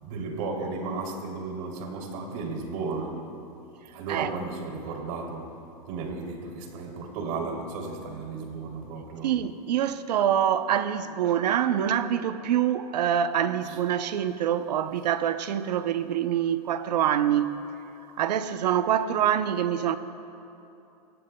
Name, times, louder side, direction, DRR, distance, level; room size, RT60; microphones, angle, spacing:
voice 1, 0.0-3.3 3.9-5.5 5.9-9.3 13.7-13.8, right 3 dB, 60° right, 3.0 m, -34 dB
voice 2, 9.2-17.6 18.2-20.0, right 10 dB, 85° right, 0.8 m, -25 dB
23.5 x 17.5 x 2.3 m
supercardioid pair, 130°, 21 cm